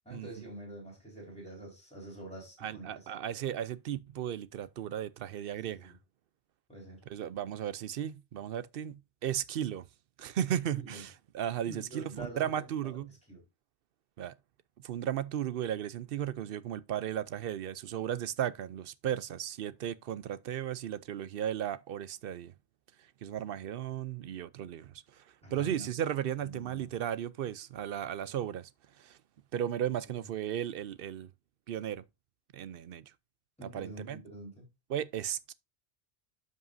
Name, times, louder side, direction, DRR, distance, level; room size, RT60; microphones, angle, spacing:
voice 1, 0.0-3.1 5.6-6.0 6.7-7.0 10.8-11.0 11.6-12.5 12.8-13.4 25.4-26.0 26.4-26.9 30.1-30.3 33.6-34.7, right 1 dB, 5° left, 4.2 m, -46 dB
voice 2, 2.6-5.9 7.1-9.9 10.2-13.1 14.2-14.3 14.8-22.5 23.2-25.2 25.5-28.7 29.0-29.2 29.5-31.3 31.7-32.0 32.5-33.0 33.6-34.2 34.9-35.5, right 10 dB, 65° right, 0.7 m, -35 dB
12.5 x 5.5 x 2.6 m
omnidirectional pair, 1.1 m